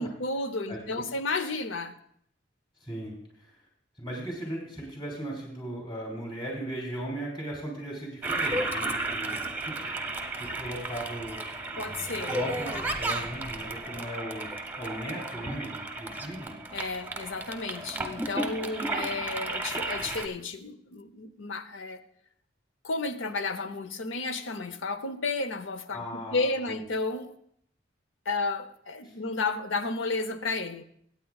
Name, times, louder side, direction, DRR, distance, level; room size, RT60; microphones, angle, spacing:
voice 1, 0.0-2.0 11.8-12.4 16.7-22.0 22.8-27.3 28.3-30.8, left 3 dB, 85° left, 11 dB, 0.8 m, -32 dB
voice 2, 2.8-3.5 4.0-9.5 10.3-11.4 12.3-14.5 14.8-16.5 25.9-26.5 29.0-29.1, right 1 dB, 25° left, -3 dB, 3.1 m, -37 dB
Toilet flush, 8.2-20.3, right 2 dB, 10° right, 0.8 m, -33 dB
23.0 x 9.1 x 2.4 m, 0.68 s
head